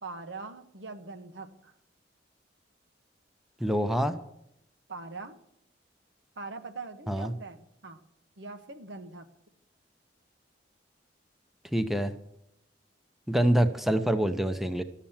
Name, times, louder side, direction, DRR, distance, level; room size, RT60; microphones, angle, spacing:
voice 1, 0.0-1.7 4.9-5.4 6.4-8.0 8.4-9.3, right 3 dB, 80° right, 8 dB, 1.2 m, -42 dB
voice 2, 3.6-4.1 7.1-7.3 11.7-12.1 13.3-14.8, right 1 dB, ahead, 9 dB, 0.7 m, -26 dB
12.5 x 7.3 x 7.1 m, 0.77 s
head